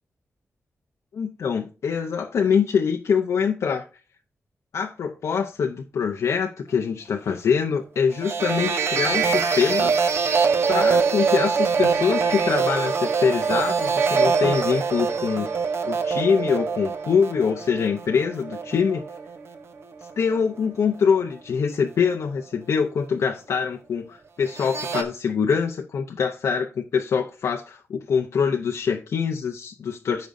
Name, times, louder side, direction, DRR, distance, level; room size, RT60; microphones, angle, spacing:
voice 1, 1.1-3.9 4.7-9.9 10.7-15.5 15.8-19.0 20.2-30.3, left 6 dB, 80° left, 0.6 m, -24 dB
sound 1, 8.1-19.6 19.9-20.4 24.5-25.0, right 5 dB, 60° right, 1.0 m, -24 dB
14.5 x 5.1 x 2.6 m
wide cardioid pair, 145°, 5 cm